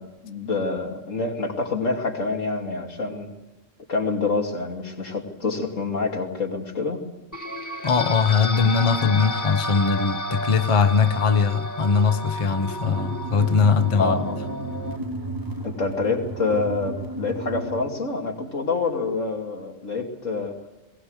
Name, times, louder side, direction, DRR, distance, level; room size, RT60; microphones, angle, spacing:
voice 1, 0.0-3.3 3.9-7.0 14.0-14.4 15.6-20.6, left 3 dB, 80° left, 3.1 m, -27 dB
sound 1, 7.3-15.0, left 1 dB, 15° left, 1.6 m, -32 dB
voice 2, 7.8-14.3, left 5 dB, 30° left, 0.7 m, -21 dB
sound 2, 12.8-17.8, right 2 dB, 15° right, 1.3 m, -33 dB
21.0 x 18.0 x 8.1 m
omnidirectional pair, 1.3 m